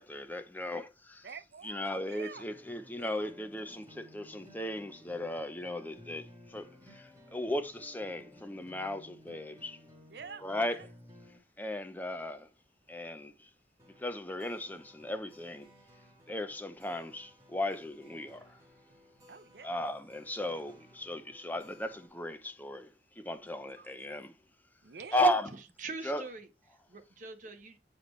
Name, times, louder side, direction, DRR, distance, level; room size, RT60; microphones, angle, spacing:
voice 1, 0.0-1.3 1.6-9.8 10.4-10.8 11.6-12.5 12.9-13.5 14.0-15.7 16.3-18.6 19.6-22.9 23.2-24.3 25.1-25.5 26.0-26.2, left 1 dB, 10° left, 0.6 m, -36 dB
voice 2, 1.2-2.4 3.0-3.3 10.1-10.9 19.3-19.8 23.8-24.0 24.8-25.3, right 5 dB, 65° right, 0.6 m, -48 dB
sound 1, 2.3-11.4 13.8-22.1, left 1 dB, 20° right, 2.0 m, -57 dB
voice 3, 25.8-27.8, right 3 dB, 45° right, 1.0 m, -43 dB
7.6 x 4.2 x 3.1 m
head